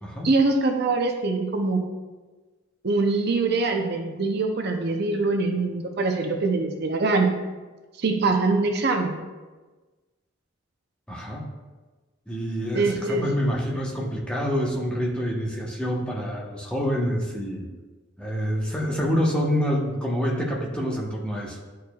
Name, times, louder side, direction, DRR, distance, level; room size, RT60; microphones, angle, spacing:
voice 1, 0.2-1.8 2.8-7.3 8.0-9.2 12.7-13.3, right 3 dB, 55° right, 4 dB, 0.6 m, -23 dB
voice 2, 11.1-11.4 12.3-17.7 18.2-21.6, equal, 5° left, -3 dB, 0.9 m, -27 dB
11.0 x 4.7 x 2.3 m, 1.3 s
head